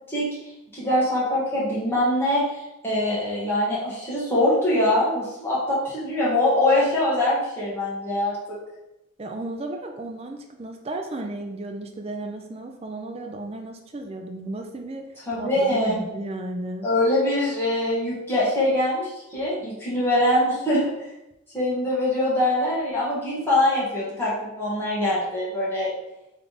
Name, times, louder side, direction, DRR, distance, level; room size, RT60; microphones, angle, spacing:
voice 1, 0.7-8.6 15.3-16.0 16.8-20.8 21.5-25.9, left 1 dB, 10° left, -9 dB, 1.4 m, -23 dB
voice 2, 9.2-16.9, right 2 dB, 25° right, 4 dB, 0.4 m, -34 dB
3.6 x 3.3 x 4.0 m, 0.94 s
head